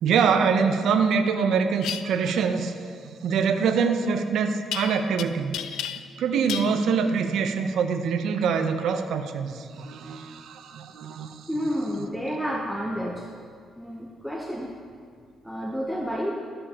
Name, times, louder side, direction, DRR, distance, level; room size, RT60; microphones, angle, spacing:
voice 1, 0.0-5.9 6.2-11.5, right 6 dB, 75° right, 6 dB, 0.6 m, -24 dB
sound 1, 1.8-2.0 4.7-5.2 5.5-6.2 6.5-6.7, left 10 dB, 85° left, 0.3 m, -32 dB
voice 2, 11.5-13.3 13.8-14.7 15.4-16.3, equal, ahead, -1 dB, 0.8 m, -30 dB
13.5 x 6.9 x 2.9 m, 2.1 s
cardioid pair, 90°, 0 cm